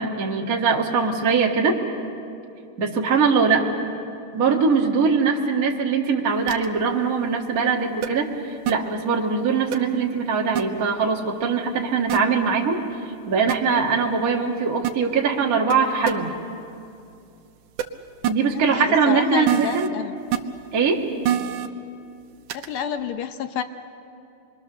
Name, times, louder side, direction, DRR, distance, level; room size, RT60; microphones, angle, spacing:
voice 1, 0.0-1.8 2.8-3.7 4.3-8.3 8.7-12.8 13.3-16.3 18.3-19.9 20.7-21.1, right 5 dB, 35° right, -1 dB, 1.5 m, -21 dB
sound 1, 6.5-6.7 8.0-8.1 8.7-8.8 9.7-9.8 10.6-10.7 12.1-12.2 13.5-13.6 14.8-14.9 15.7-15.8 16.1-16.2 17.8-17.9 18.2-18.3 19.5-19.9 20.3-20.4 21.2-21.7 22.5-22.7, right 11 dB, 90° right, 2.4 m, -23 dB
voice 2, 18.7-20.2 22.5-23.6, left 8 dB, 80° left, 8 dB, 1.2 m, -29 dB
26.5 x 22.5 x 6.7 m, 2.6 s
omnidirectional pair, 3.5 m